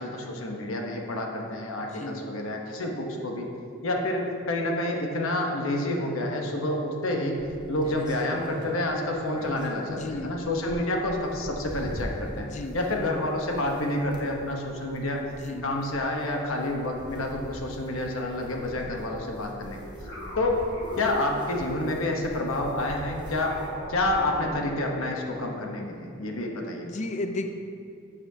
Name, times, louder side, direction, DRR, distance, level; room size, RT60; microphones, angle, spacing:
voice 1, 0.0-3.5 3.8-7.4 7.7-12.5 12.7-15.2 15.6-19.8 20.4-20.6 21.0-23.6 23.9-27.0, left 1 dB, 75° left, 1 dB, 1.0 m, -29 dB
voice 2, 1.9-2.2 9.9-10.4 12.4-12.8 15.3-15.7 26.8-27.5, left 2 dB, 35° left, 7 dB, 0.4 m, -34 dB
sound 1, 7.4-24.6, equal, 20° right, 0.9 m, -43 dB
sound 2, 19.2-21.9 22.5-25.2, equal, 55° left, 1.8 m, -41 dB
11.5 x 6.9 x 2.8 m, 2.4 s
head